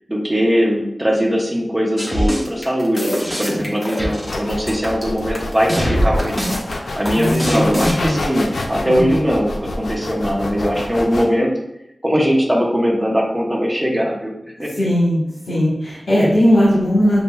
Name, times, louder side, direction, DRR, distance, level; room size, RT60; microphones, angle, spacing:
voice 1, 0.1-6.3 7.0-11.5 12.0-14.7, equal, 10° right, -2 dB, 1.0 m, -20 dB
sound 1, 2.0-8.1, equal, 15° left, 1.1 m, -22 dB
sound 2, 4.3-11.3, left 2 dB, 90° left, 0.5 m, -27 dB
voice 2, 7.1-8.2 8.8-9.2 14.8-15.2 15.5-17.2, equal, 70° left, -9 dB, 1.4 m, -17 dB
6.9 x 2.8 x 2.3 m, 0.84 s
wide cardioid pair, 80°, 0 cm